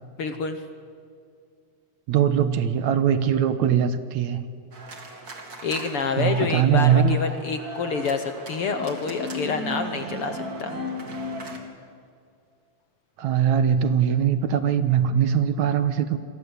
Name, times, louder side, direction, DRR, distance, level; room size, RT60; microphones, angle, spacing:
voice 1, 0.2-0.6 5.6-10.8, left 5 dB, 55° left, 8 dB, 1.7 m, -28 dB
voice 2, 2.1-4.4 6.2-7.2 13.2-16.2, right 8 dB, 70° right, 11 dB, 2.2 m, -21 dB
sound 1, 4.7-11.6, equal, 30° right, 2.9 m, -36 dB
27.5 x 21.5 x 8.2 m, 2.3 s
omnidirectional pair, 3.7 m